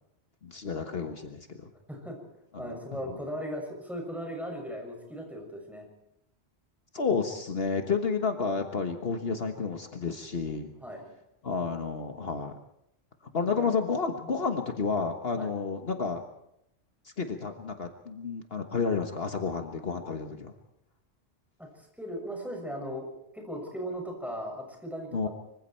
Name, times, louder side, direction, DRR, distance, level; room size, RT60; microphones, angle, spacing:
voice 1, 0.4-1.7 2.5-2.8 6.9-10.7 11.4-12.5 13.3-16.2 17.2-20.5 25.1-25.3, left 5 dB, 65° left, 5 dB, 1.6 m, -31 dB
voice 2, 2.6-5.9 10.8-11.0 13.4-13.7 15.4-15.5 21.6-23.1 23.3-25.3, equal, ahead, 1 dB, 6.5 m, -37 dB
25.5 x 24.5 x 4.5 m, 0.80 s
omnidirectional pair, 1.1 m